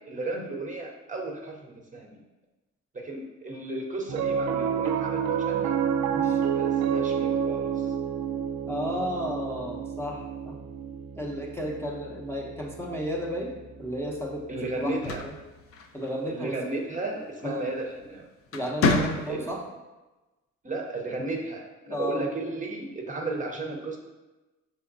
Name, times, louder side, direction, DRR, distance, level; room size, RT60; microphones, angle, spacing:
voice 1, 0.1-2.2 2.9-5.8 6.5-7.9 14.5-15.2 16.3-18.3 19.3-19.5 20.6-24.0, right 2 dB, 25° right, 0 dB, 0.7 m, -34 dB
Piano, 4.1-14.6, right 8 dB, 65° right, 0.5 m, -30 dB
voice 2, 8.7-10.6 11.2-15.3 15.9-16.6 17.4-17.7 18.5-19.6 21.9-22.3, equal, 10° left, -3 dB, 0.6 m, -33 dB
sound 1, 14.8-16.4 17.8-18.1 18.5-19.6, left 3 dB, 50° left, 0.5 m, -28 dB
5.7 x 2.9 x 2.6 m, 1.1 s
cardioid pair, 90°, 30 cm